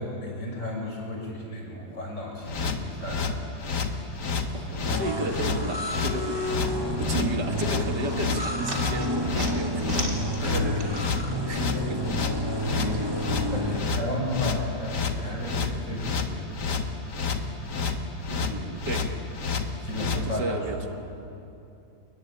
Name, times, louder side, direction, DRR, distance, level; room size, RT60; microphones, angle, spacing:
voice 1, 0.0-3.3 10.4-10.7 11.5-11.9 12.6-16.4 17.3-17.7 19.8-20.9, left 1 dB, 50° left, -1 dB, 7.1 m, -34 dB
sound 1, 2.4-20.2, left 5 dB, 80° left, 2.3 m, -30 dB
voice 2, 4.5-6.7 7.0-12.0 12.4-12.6 18.3-19.1 20.3-20.9, right 3 dB, 85° right, 4 dB, 2.6 m, -34 dB
sound 2, 4.9-13.8, left 1 dB, 15° right, 1.8 m, -30 dB
sound 3, 8.0-11.3 11.6-13.0, right 2 dB, 55° right, 3.6 m, -39 dB
29.5 x 22.0 x 8.8 m, 2.7 s
omnidirectional pair, 1.8 m